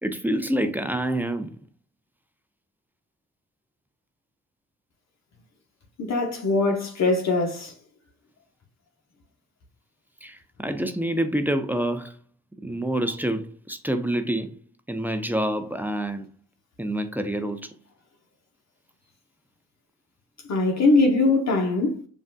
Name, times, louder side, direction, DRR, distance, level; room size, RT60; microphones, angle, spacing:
voice 1, 0.0-1.5 10.2-12.2 12.6-14.6 14.9-16.3 16.8-17.7, right 1 dB, 5° right, 0.6 m, -27 dB
voice 2, 6.0-7.7 20.5-22.1, left 3 dB, 50° left, 1.1 m, -22 dB
7.1 x 2.6 x 2.3 m
hypercardioid pair, 50°, 35 cm